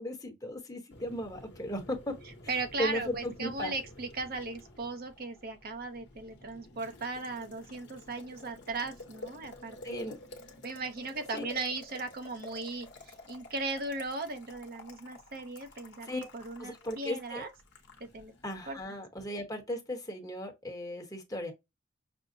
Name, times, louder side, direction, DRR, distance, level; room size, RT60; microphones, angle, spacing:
voice 1, 0.0-2.1 2.8-3.7 9.8-10.2 11.3-11.5 16.0-16.3 16.6-17.5 18.4-21.5, left 1 dB, 20° left, 1.1 m, -36 dB
Boiling, 0.9-18.8, left 1 dB, 60° left, 1.1 m, -51 dB
voice 2, 2.5-10.1 10.6-17.5 18.0-18.3 18.7-18.8, right 3 dB, 50° right, 0.7 m, -37 dB
6.1 x 2.1 x 2.6 m
head